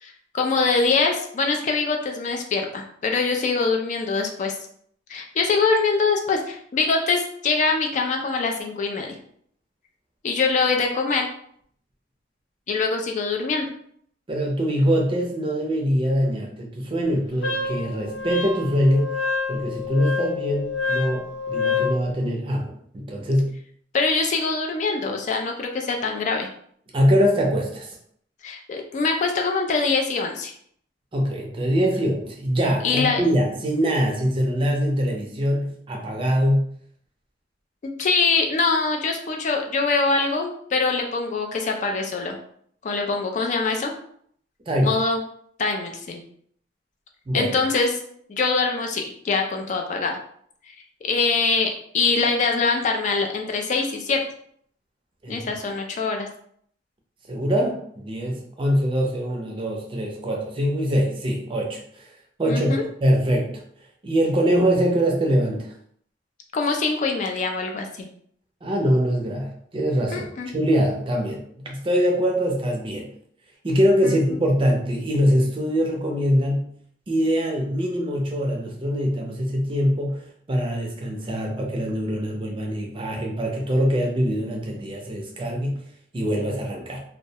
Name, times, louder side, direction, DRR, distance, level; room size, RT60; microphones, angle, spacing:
voice 1, 0.0-4.6 5.1-9.1 10.2-11.3 12.7-13.7 23.9-26.5 28.4-30.5 32.8-33.2 37.8-42.4 42.8-43.9 44.8-45.2 45.6-46.2 47.3-48.0 48.3-50.2 51.0-54.2 55.3-56.3 62.5-62.8 66.5-68.1 70.1-70.5 74.0-74.4, left 4 dB, 40° left, 2 dB, 0.3 m, -23 dB
voice 2, 14.3-19.2 19.5-23.6 26.9-27.9 31.1-36.7 44.7-45.0 47.3-47.6 55.2-55.5 57.3-61.8 62.4-62.7 63.0-63.6 64.0-65.7 68.6-70.3 70.5-73.1 73.6-76.7 77.1-85.7 86.1-87.0, equal, 30° right, 0 dB, 0.4 m, -23 dB
Wind instrument woodwind instrument, 17.4-22.0, left 5 dB, 85° left, 0.6 m, -27 dB
2.2 x 2.0 x 2.7 m, 0.64 s
head